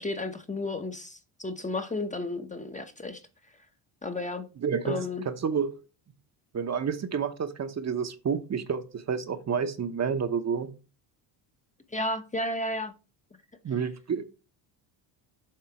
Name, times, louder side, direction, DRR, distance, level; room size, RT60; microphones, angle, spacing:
voice 1, 0.0-3.2 4.0-4.5 4.8-5.2 11.9-12.9, left 2 dB, 15° left, 0.8 m, -33 dB
voice 2, 4.6-5.7 6.5-10.7 13.6-14.2, right 6 dB, 35° right, 0.9 m, -29 dB
7.6 x 3.9 x 5.8 m
cardioid pair, 100°, 48 cm